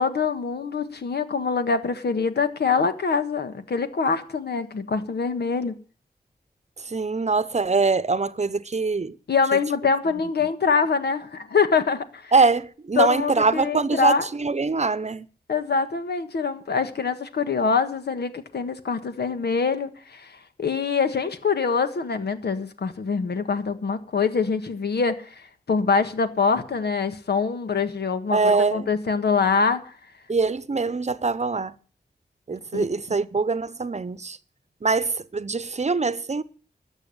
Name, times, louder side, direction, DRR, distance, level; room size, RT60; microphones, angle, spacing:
voice 1, 0.0-5.7 9.3-12.3 13.0-14.2 15.5-25.3 25.7-29.8 32.7-32.8, left 5 dB, 80° left, 1.5 m, -24 dB
voice 2, 6.9-9.2 12.3-15.3 28.3-28.9 30.3-31.7 32.5-34.4 34.8-36.4, right 4 dB, 45° right, 0.8 m, -23 dB
13.0 x 7.2 x 9.9 m
cardioid pair, 45°, 17 cm